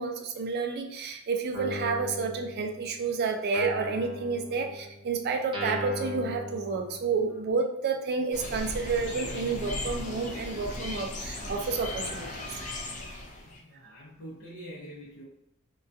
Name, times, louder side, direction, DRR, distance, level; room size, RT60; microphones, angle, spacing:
voice 1, 0.0-12.5, right 4 dB, 50° right, 4 dB, 0.4 m, -30 dB
Guitar, 1.5-3.0 3.5-7.4, left 1 dB, 25° right, 0.7 m, -39 dB
sound 1, 8.3-13.6, left 2 dB, 35° left, 0.4 m, -37 dB
voice 2, 13.4-15.2, equal, 80° left, -8 dB, 0.7 m, -45 dB
2.2 x 2.2 x 2.6 m, 0.82 s
head